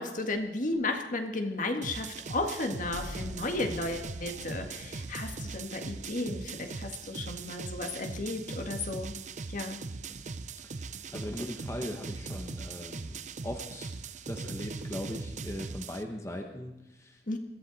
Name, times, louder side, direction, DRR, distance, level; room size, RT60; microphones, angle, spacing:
voice 1, 0.0-9.2 9.5-9.8 17.3-17.4, left 2 dB, 50° left, 5 dB, 1.8 m, -34 dB
sound 1, 1.8-16.0, right 4 dB, 45° right, 0.6 m, -40 dB
sound 2, 2.9-7.6, equal, 75° right, 6.4 m, -48 dB
voice 2, 10.6-13.9 14.2-17.4, left 1 dB, 15° left, 3 dB, 1.0 m, -40 dB
21.5 x 15.0 x 4.1 m, 0.93 s
head